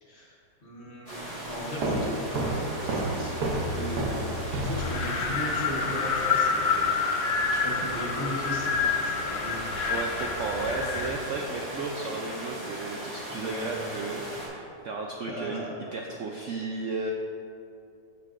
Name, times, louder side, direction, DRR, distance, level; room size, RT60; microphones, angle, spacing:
voice 1, 0.0-4.2 4.6-7.1 7.5-9.6 12.8-13.7 15.3-15.7, equal, 45° left, -5 dB, 1.6 m, -37 dB
sound 1, 1.1-14.5, right 1 dB, 20° right, 1.5 m, -38 dB
sound 2, 1.8-5.5, right 1 dB, 65° right, 1.4 m, -30 dB
Wind, 4.8-11.2, left 5 dB, 80° left, 1.4 m, -28 dB
voice 2, 9.9-15.6 15.9-17.1, right 3 dB, 85° right, 0 dB, 0.6 m, -34 dB
10.5 x 6.9 x 2.5 m, 2.6 s
omnidirectional pair, 1.9 m